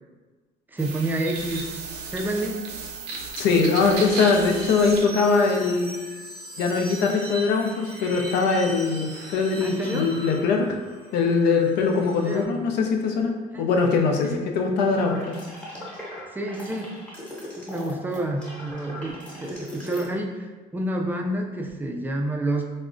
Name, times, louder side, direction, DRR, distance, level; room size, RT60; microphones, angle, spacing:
voice 1, 0.7-1.7 2.1-2.7 9.6-10.1 12.2-12.4 13.5-13.7 14.2-14.4 16.3-16.9 17.6-22.7, right 1 dB, 10° right, 1 dB, 0.3 m, -29 dB
sound 1, 0.8-12.4, right 3 dB, 75° right, 0.5 m, -37 dB
voice 2, 3.4-5.9 6.6-10.7 11.1-15.4, left 4 dB, 85° left, 3 dB, 0.5 m, -22 dB
sound 2, 14.9-20.1, left 1 dB, 10° left, 0.8 m, -39 dB
3.4 x 2.1 x 2.5 m, 1.3 s
cardioid pair, 110°, 17 cm